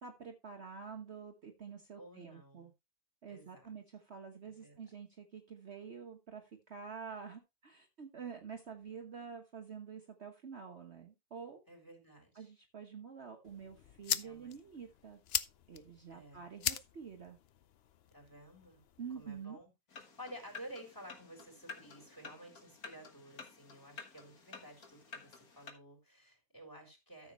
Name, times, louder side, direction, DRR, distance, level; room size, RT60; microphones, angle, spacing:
voice 1, 0.0-2.7 3.2-11.6 12.3-15.2 15.7-17.4 19.0-19.6, right 6 dB, 50° right, 4 dB, 1.4 m, -48 dB
voice 2, 2.0-2.7 3.3-3.7 4.4-4.8 11.7-12.5 14.2-14.5 16.1-16.5 18.1-18.8 19.1-19.7 20.2-27.3, right 1 dB, 15° left, 3 dB, 4.0 m, -53 dB
sound 1, 13.4-19.4, left 10 dB, 60° left, 0.7 m, -41 dB
sound 2, 19.9-25.7, left 5 dB, 80° left, 2.1 m, -52 dB
13.5 x 7.1 x 3.1 m, 0.23 s
omnidirectional pair, 1.5 m